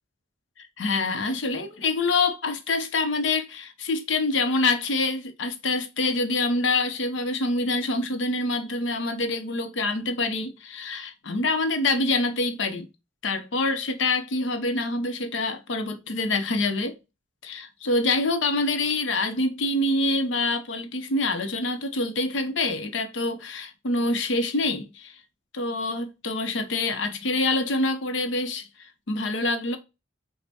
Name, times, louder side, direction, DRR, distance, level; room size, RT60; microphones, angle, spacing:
voice 1, 0.6-12.9 13.2-17.0 17.4-25.1 25.5-28.7 29.1-29.8, left 2 dB, 80° left, 0.7 m, -26 dB
5.2 x 2.1 x 2.8 m
head